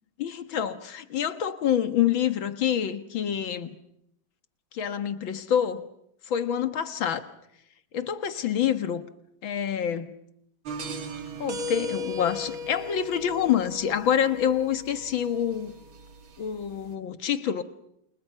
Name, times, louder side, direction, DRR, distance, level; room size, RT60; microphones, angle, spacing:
voice 1, 0.2-3.8 4.7-5.9 6.3-7.2 7.9-9.0 9.4-10.2 11.4-15.7 16.4-17.6, left 9 dB, 65° left, 2.2 m, -27 dB
sound 1, 10.6-16.9, left 1 dB, 65° right, 3.2 m, -37 dB
29.5 x 28.0 x 5.7 m
omnidirectional pair, 2.4 m